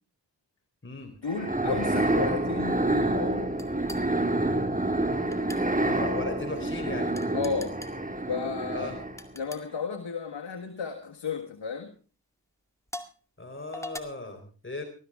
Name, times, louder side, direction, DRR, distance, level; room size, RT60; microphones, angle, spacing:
voice 1, 1.2-3.5 7.3-7.8 8.3-8.9 9.3-11.9, left 5 dB, 85° left, 3 dB, 1.7 m, -33 dB
sound 1, 1.3-9.3, right 2 dB, 20° right, 2.2 m, -28 dB
sound 2, 3.6-4.0 5.3-5.6 7.2-7.9 9.2-9.6 10.7-10.9 11.6-11.7 12.9-13.2 13.7-14.0, left 1 dB, 5° left, 2.1 m, -41 dB
voice 2, 5.8-7.1 8.7-9.0 13.4-14.8, left 2 dB, 25° left, 5 dB, 3.8 m, -37 dB
19.5 x 13.5 x 3.6 m, 0.37 s
cardioid pair, 40°, 43 cm